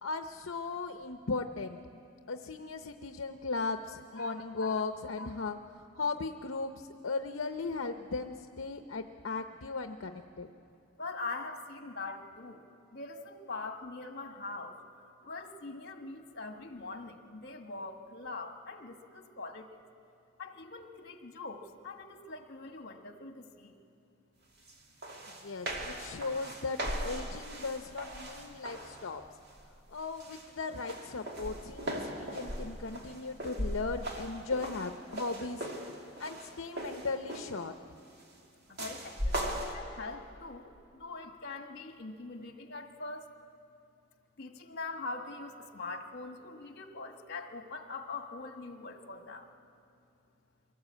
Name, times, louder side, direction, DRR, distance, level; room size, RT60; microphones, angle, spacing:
voice 1, 0.0-1.8 2.3-5.6 6.0-10.5 25.4-29.2 29.9-35.7 36.2-37.7, left 4 dB, 75° left, 7 dB, 0.7 m, -37 dB
voice 2, 4.2-4.8 5.2-5.3 11.0-12.6 12.9-19.8 20.4-23.7 38.7-43.3 44.4-49.5, left 3 dB, 55° left, 5 dB, 1.6 m, -43 dB
sound 1, 24.7-24.8 25.0-29.1 29.5-29.9 30.2-37.7 38.8-39.7, right 1 dB, 55° right, 2.4 m, -39 dB
23.5 x 18.0 x 8.5 m, 2.6 s
head